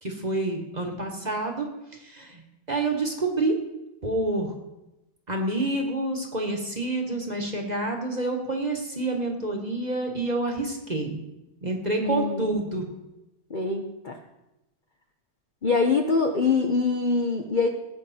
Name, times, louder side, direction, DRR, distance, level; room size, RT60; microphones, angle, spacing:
voice 1, 0.0-2.4 2.7-3.6 4.0-4.5 5.3-11.2 11.6-12.9, right 2 dB, 25° right, 2 dB, 1.4 m, -28 dB
voice 2, 12.0-12.5 13.5-14.2 15.6-17.7, left 4 dB, 55° left, 3 dB, 0.5 m, -24 dB
17.5 x 8.1 x 4.3 m, 0.97 s
omnidirectional pair, 2.2 m